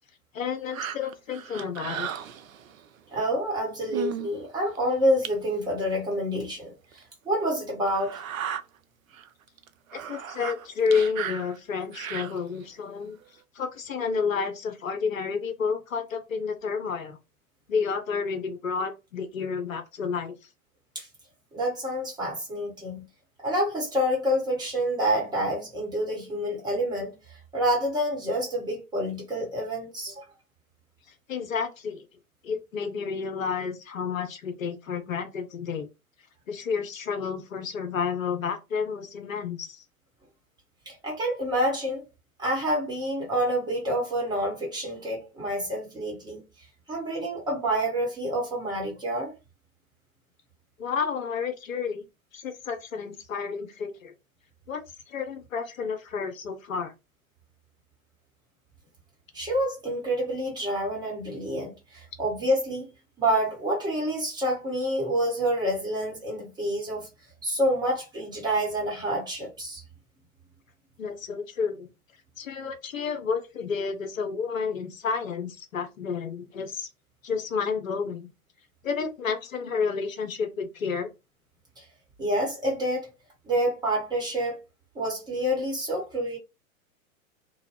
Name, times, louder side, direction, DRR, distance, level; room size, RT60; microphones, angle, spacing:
voice 1, 0.3-2.1 10.1-13.2 13.5-17.2 17.7-20.3 31.3-32.0 32.4-35.9 36.5-39.8 50.8-52.0 52.3-54.1 54.7-56.9 71.0-71.9 72.4-76.9 77.2-78.3 78.8-81.1, left 5 dB, 65° left, 0.7 m, -30 dB
sound 1, 0.7-2.8 3.5-3.6 3.9-4.3 4.7-4.8 5.2-5.3 6.3-6.4 6.9-7.0 7.9-8.6 9.1-9.3 9.6-12.6 13.2-13.3, right 9 dB, 70° right, 0.5 m, -35 dB
voice 2, 3.1-8.2 20.9-21.1 21.5-23.0 23.4-27.1 27.5-30.2 40.9-42.0 42.4-46.4 46.9-49.3 59.3-62.9 63.2-67.1 67.4-69.8 81.8-81.9 82.2-83.1 83.5-84.6 84.9-86.4, equal, 10° right, 1.1 m, -28 dB
2.6 x 2.2 x 3.1 m
figure-of-eight pair, 105°, 42 cm